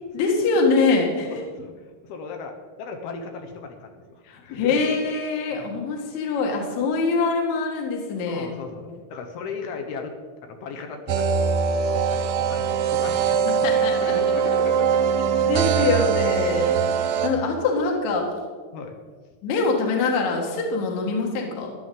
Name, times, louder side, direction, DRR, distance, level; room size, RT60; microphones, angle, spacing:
voice 1, 0.1-1.3 4.3-8.5 8.9-9.0 13.6-14.2 15.5-16.8 17.2-18.3 19.4-21.7, left 3 dB, 60° left, 0 dB, 2.5 m, -24 dB
voice 2, 1.3-4.8 5.5-5.7 8.3-10.1 10.4-11.5 12.1-13.4 13.7-15.0 17.4-17.5 18.7-19.0, left 4 dB, 80° left, 4 dB, 2.9 m, -37 dB
sound 1, 11.1-17.3, right 7 dB, 75° right, 2.1 m, -22 dB
14.0 x 11.0 x 3.8 m, 1.6 s
omnidirectional pair, 4.5 m